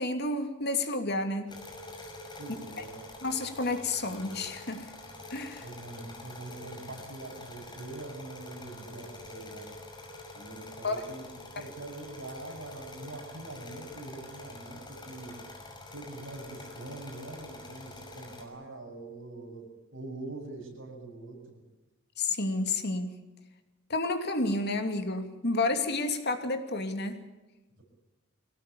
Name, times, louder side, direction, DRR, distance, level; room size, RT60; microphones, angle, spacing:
voice 1, 0.0-1.5 3.2-4.9 5.3-5.6 10.8-11.0 22.2-23.2 23.9-27.2, left 2 dB, 55° left, 7 dB, 2.8 m, -30 dB
sound 1, 1.5-18.4, left 2 dB, 20° left, 5.5 m, -46 dB
voice 2, 2.4-3.0 5.6-9.7 10.3-15.4 15.9-21.6, right 2 dB, 65° right, 1 dB, 7.8 m, -44 dB
24.5 x 18.5 x 8.6 m, 1.1 s
head